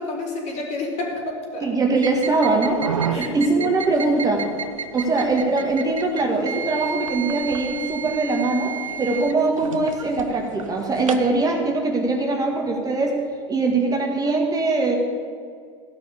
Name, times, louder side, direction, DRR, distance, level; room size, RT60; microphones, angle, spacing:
voice 1, 0.0-1.7 3.1-3.7 5.0-5.1, left 2 dB, 45° left, -1 dB, 4.4 m, -30 dB
voice 2, 1.6-2.9 3.1-4.4 4.9-13.2 13.5-15.0, right 3 dB, 20° right, 1 dB, 1.9 m, -22 dB
sound 1, 2.0-11.3, right 7 dB, 85° right, 0.8 m, -32 dB
15.5 x 6.1 x 8.5 m, 2.1 s
hypercardioid pair, 90°, 17 cm